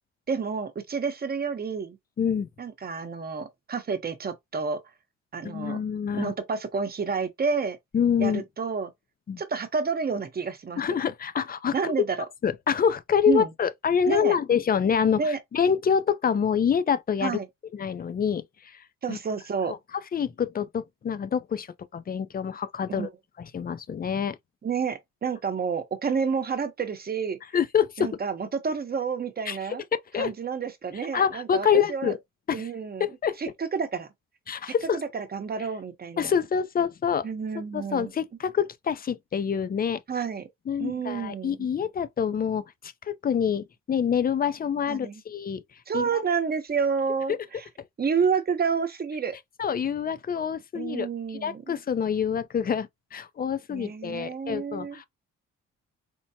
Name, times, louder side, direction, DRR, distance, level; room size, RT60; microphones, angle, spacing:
voice 1, 0.3-2.0 2.6-4.8 5.3-5.8 6.1-7.8 8.2-8.9 9.4-10.8 11.7-12.3 13.3-13.5 14.1-14.4 15.2-15.4 17.2-17.5 19.0-19.8 22.9-23.1 24.6-27.4 28.0-29.8 30.2-32.1 32.5-33.1 33.4-34.1 35.1-36.3 37.2-38.1 40.1-40.5 40.8-41.7 44.9-45.2 45.9-47.7 48.0-49.4 50.7-51.8 53.7-55.0, right 5 dB, 30° right, 0.9 m, -29 dB
voice 2, 2.2-2.5 5.4-6.3 7.9-8.4 9.3-9.4 10.8-11.9 12.4-17.4 17.7-19.2 19.7-19.8 20.1-23.1 23.4-24.4 27.5-28.1 29.5-29.6 30.1-30.3 31.1-32.2 32.5-32.7 33.0-33.4 34.5-35.0 36.2-37.3 37.7-40.0 40.7-45.6 45.9-46.2 49.6-55.0, left 7 dB, 30° left, 0.4 m, -26 dB
4.5 x 2.1 x 2.7 m
cardioid pair, 90°, 30 cm